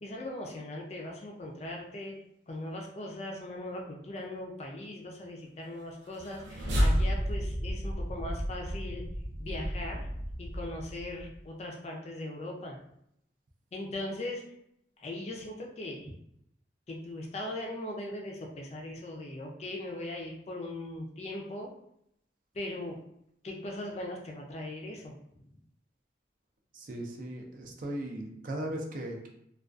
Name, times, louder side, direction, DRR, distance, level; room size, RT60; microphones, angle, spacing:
voice 1, 0.0-2.1 2.5-9.0 9.4-10.1 10.4-12.8 13.7-14.4 15.0-16.1 16.9-21.7 22.5-23.0 23.4-25.1, left 1 dB, 35° left, 0 dB, 0.4 m, -39 dB
sound 1, 6.1-11.4, equal, 90° right, 0.7 m, -32 dB
voice 2, 26.7-29.3, right 1 dB, 45° right, 1 dB, 0.4 m, -37 dB
2.3 x 2.3 x 2.4 m, 0.75 s
head